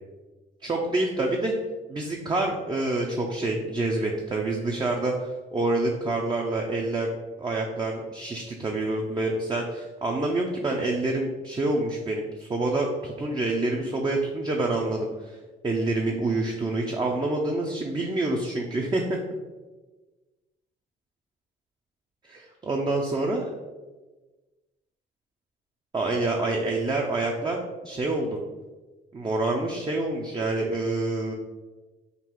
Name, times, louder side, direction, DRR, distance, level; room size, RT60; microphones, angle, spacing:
voice 1, 0.6-1.5 1.9-7.1 7.4-15.4 15.6-19.2 22.3-23.4 25.9-28.4 29.1-31.3, right 2 dB, 20° right, 0 dB, 0.5 m, -27 dB
3.8 x 2.4 x 4.3 m, 1.2 s
cardioid pair, 90°, 20 cm